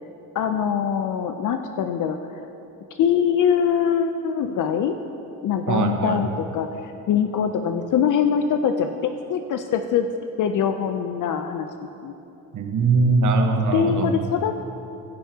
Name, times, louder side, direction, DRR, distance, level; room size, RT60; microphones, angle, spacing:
voice 1, 0.3-2.5 3.0-5.0 5.4-10.1 10.4-12.1 13.7-14.5, left 8 dB, 60° left, 7 dB, 0.5 m, -23 dB
voice 2, 5.7-6.2 12.5-14.1, right 3 dB, 60° right, 4 dB, 1.1 m, -21 dB
16.5 x 5.6 x 2.8 m, 2.9 s
cardioid pair, 75°, 35 cm